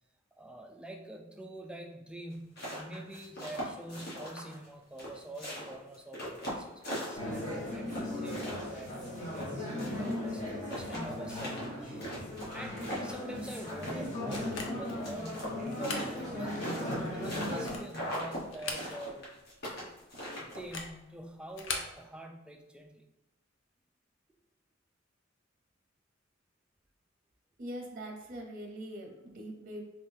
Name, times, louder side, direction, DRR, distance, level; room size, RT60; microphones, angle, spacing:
voice 1, 0.3-12.1 12.5-19.3 20.4-23.0, right 1 dB, 5° right, 3 dB, 0.3 m, -46 dB
sound 1, 2.3-4.7 5.0-7.5 7.9-10.1 10.4-10.5 10.7-14.0 14.3-17.6 17.9-18.4 18.7-20.8, equal, 55° left, 1.2 m, -40 dB
sound 2, 7.1-17.8, left 1 dB, 35° left, 1.4 m, -37 dB
sound 3, 14.3-15.0 15.6-16.1 16.6-16.7 17.3-18.0 18.5-19.2 19.5-19.6 20.5-21.0 21.5-22.0, left 4 dB, 75° left, 0.5 m, -40 dB
voice 2, 27.6-29.8, right 1 dB, 45° right, 1 dB, 0.7 m, -42 dB
3.5 x 3.0 x 2.7 m, 0.99 s
head